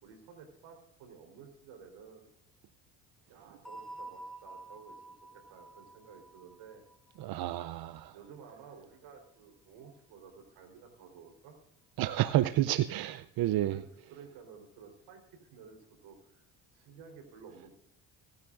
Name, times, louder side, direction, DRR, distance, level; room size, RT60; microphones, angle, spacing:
voice 1, 0.0-2.3 3.3-6.8 8.1-11.6 13.6-13.8 14.1-17.7, right 6 dB, 80° right, 4.0 m, -53 dB
sound 1, 3.6-8.3, right 2 dB, ahead, 3.1 m, -49 dB
voice 2, 7.2-8.1 12.0-13.8, right 14 dB, 60° right, 0.6 m, -30 dB
25.0 x 11.0 x 2.5 m
supercardioid pair, 70°, 42 cm